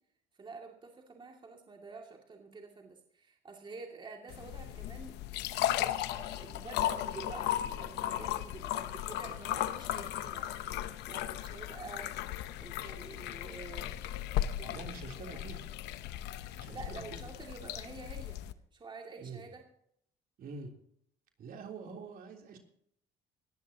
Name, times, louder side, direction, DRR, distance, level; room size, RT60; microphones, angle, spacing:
voice 1, 0.4-5.2 6.1-10.5 11.1-12.1 12.6-13.9 14.6-14.9 15.3-15.5 16.4-18.4 18.7-19.6, right 4 dB, 30° right, 1 dB, 2.5 m, -48 dB
sound 1, 4.3-18.5, left 12 dB, 85° left, 0.9 m, -36 dB
voice 2, 14.7-15.6 16.6-17.2 19.2-19.4 20.4-20.7 21.4-22.6, right 4 dB, 60° right, 2 dB, 3.4 m, -45 dB
20.0 x 14.5 x 2.9 m, 0.68 s
cardioid pair, 110°, 17 cm